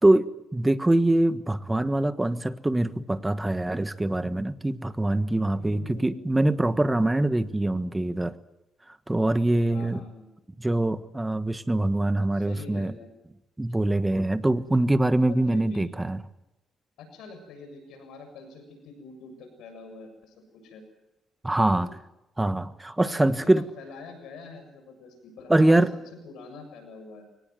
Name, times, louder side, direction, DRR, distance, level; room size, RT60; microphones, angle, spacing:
voice 1, 0.0-8.3 9.1-10.0 10.6-12.9 13.6-16.2 21.4-21.9 22.4-23.6 25.5-25.9, right 1 dB, 15° right, 12 dB, 1.4 m, -23 dB
voice 2, 5.5-6.3 9.7-10.3 12.3-13.1 15.3-15.9 17.0-20.8 21.7-21.9 23.0-25.8 26.2-27.2, left 4 dB, 85° left, 6 dB, 7.1 m, -45 dB
23.5 x 19.0 x 9.4 m, 0.91 s
cardioid pair, 90°, 0 cm